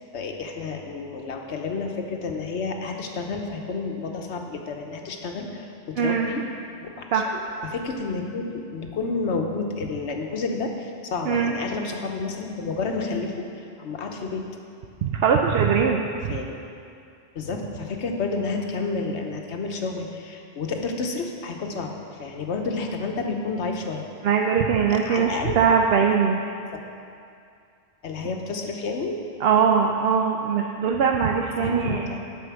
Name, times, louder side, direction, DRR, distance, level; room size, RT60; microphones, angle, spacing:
voice 1, 0.1-6.4 6.8-7.2 7.6-14.4 16.3-16.6 17.3-24.0 25.0-25.6 26.4-26.8 28.0-29.2 31.6-32.2, left 4 dB, 85° left, 3 dB, 1.2 m, -30 dB
voice 2, 6.0-6.3 7.1-7.3 11.3-11.5 15.0-16.4 24.2-26.4 29.4-32.1, right 6 dB, 70° right, 1 dB, 0.8 m, -21 dB
9.4 x 5.5 x 7.0 m, 2.5 s
omnidirectional pair, 1.1 m